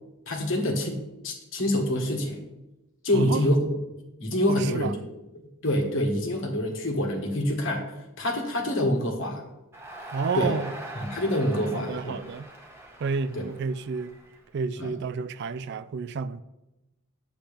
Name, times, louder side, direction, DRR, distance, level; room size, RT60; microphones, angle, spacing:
voice 1, 0.3-2.4 3.0-3.6 4.2-4.9 5.6-7.9 8.2-9.4 10.3-10.6 11.0-12.1 13.3-13.4 14.8-14.9, left 1 dB, 60° left, 1.6 m, -26 dB
voice 2, 4.5-4.9 10.1-10.7 11.7-12.5 13.0-14.2 14.5-16.4, right 5 dB, 50° right, 0.3 m, -30 dB
Crowd, 9.7-14.9, right 1 dB, 10° right, 1.1 m, -42 dB
10.0 x 7.8 x 3.4 m
head